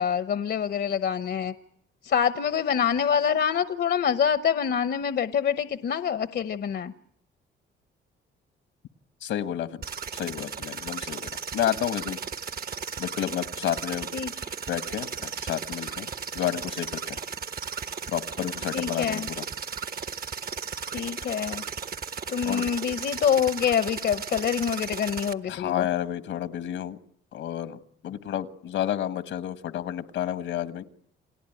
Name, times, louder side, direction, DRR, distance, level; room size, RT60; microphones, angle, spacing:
voice 1, 0.0-1.5 2.0-6.9 14.1-14.3 18.7-19.3 20.9-21.6 22.3-25.9, left 8 dB, 55° left, 13 dB, 0.9 m, -26 dB
voice 2, 9.2-9.8 10.1-12.2 13.0-14.1 14.7-16.1 16.3-17.0 18.1-19.4 22.4-22.7 25.5-27.0 27.3-27.8 28.0-30.8, left 11 dB, 80° left, 13 dB, 1.4 m, -30 dB
sound 1, 9.8-25.3, right 6 dB, 50° right, 1.2 m, -35 dB
29.0 x 18.0 x 9.1 m, 0.74 s
cardioid pair, 90°, 20 cm